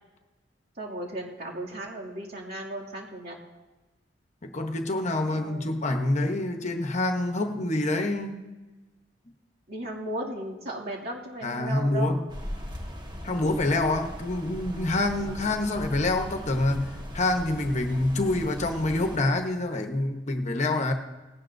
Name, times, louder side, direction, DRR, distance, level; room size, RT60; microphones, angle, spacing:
voice 1, 0.8-3.4 5.3-5.7 9.7-12.2, right 1 dB, 60° right, -3 dB, 2.4 m, -36 dB
voice 2, 4.4-8.4 11.4-12.3 13.2-20.9, left 2 dB, 40° left, 5 dB, 0.9 m, -26 dB
sound 1, 12.3-19.2, equal, 25° right, 1.3 m, -39 dB
18.5 x 16.5 x 2.6 m, 1.2 s
head